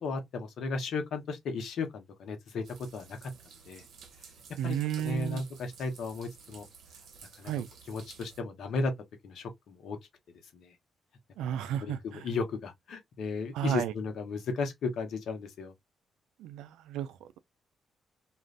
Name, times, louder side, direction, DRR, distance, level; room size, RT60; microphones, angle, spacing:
voice 1, 0.0-3.3 3.6-3.8 4.6-6.6 7.4-7.5 7.9-8.9 9.2-10.0 10.5-10.8 11.4-15.7, left 3 dB, 70° left, 0.9 m, -35 dB
sound 1, 2.6-8.4, right 6 dB, 70° right, 0.8 m, -53 dB
voice 2, 4.6-5.4 7.4-7.7 11.4-12.2 13.5-13.9 16.4-17.4, right 10 dB, 90° right, 0.3 m, -33 dB
2.5 x 2.4 x 3.1 m
supercardioid pair, 65°, 0 cm